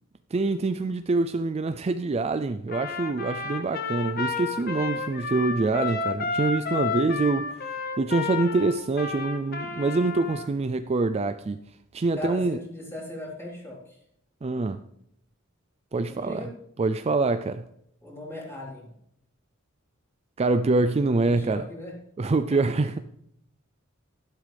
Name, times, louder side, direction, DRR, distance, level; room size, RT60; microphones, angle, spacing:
voice 1, 0.3-7.5 8.0-11.6 11.9-12.6 14.4-14.8 15.9-16.5 16.8-17.6 20.4-21.6 22.2-23.0, right 3 dB, 30° right, 0.4 m, -25 dB
Trumpet, 2.7-10.5, left 4 dB, 45° left, 1.3 m, -31 dB
voice 2, 12.1-14.0 16.1-16.5 18.0-18.9 21.2-21.9 22.5-22.6, left 1 dB, 15° left, 4.1 m, -38 dB
13.0 x 11.0 x 3.4 m
head